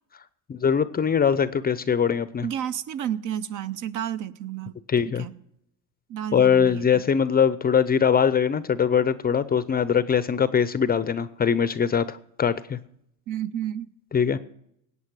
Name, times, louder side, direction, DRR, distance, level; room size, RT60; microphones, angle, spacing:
voice 1, 0.5-2.5 4.9-5.2 6.3-12.8 14.1-14.4, left 7 dB, 20° left, 15 dB, 0.6 m, -22 dB
voice 2, 2.4-4.8 5.2-5.4 6.1-7.0 13.3-13.9, right 10 dB, 45° right, 14 dB, 0.7 m, -31 dB
18.0 x 8.4 x 4.8 m, 0.75 s
hypercardioid pair, 90°, 44 cm